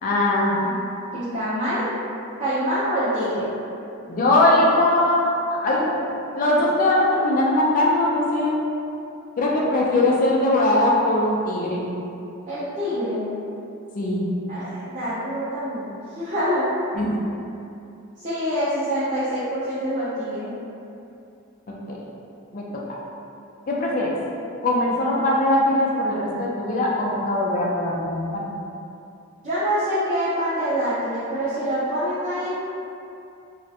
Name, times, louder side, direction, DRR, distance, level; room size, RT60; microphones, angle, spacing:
voice 1, 0.0-0.6 4.1-5.3 5.6-6.0 6.3-8.6 9.4-11.8 13.9-14.2 16.9-17.2 21.7-22.0 22.5-22.8 23.7-24.1 24.6-28.5, left 1 dB, 35° left, -3 dB, 0.3 m, -21 dB
voice 2, 1.1-1.9 2.4-3.5 12.5-13.2 14.5-15.9 16.1-16.7 18.2-20.5 29.4-32.5, equal, 35° right, -15 dB, 0.5 m, -25 dB
2.4 x 2.1 x 2.7 m, 2.7 s
head